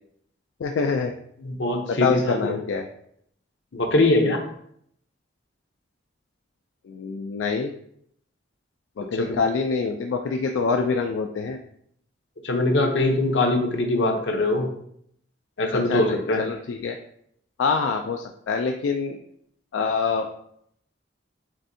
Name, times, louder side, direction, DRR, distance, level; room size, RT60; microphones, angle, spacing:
voice 1, 0.6-1.1 1.9-2.9 6.9-7.7 9.0-11.6 15.7-17.0 17.6-19.2 19.7-20.3, left 5 dB, 85° left, 4 dB, 0.4 m, -25 dB
voice 2, 1.4-2.5 3.7-4.4 9.1-9.4 12.4-14.7 15.6-16.4, left 2 dB, 70° left, 3 dB, 0.8 m, -22 dB
7.4 x 2.6 x 2.7 m, 0.69 s
head